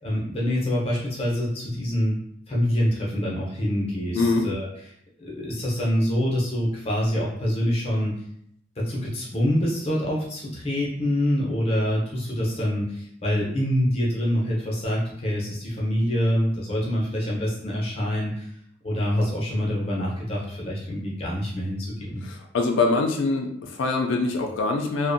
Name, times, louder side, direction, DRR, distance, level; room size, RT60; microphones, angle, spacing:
voice 1, 0.0-2.2 2.5-4.7 5.2-8.1 8.8-18.4 18.8-22.2, equal, 30° left, -4 dB, 0.6 m, -25 dB
voice 2, 22.2-25.1, left 3 dB, 70° left, 2 dB, 0.3 m, -24 dB
2.5 x 2.1 x 2.5 m, 0.72 s
head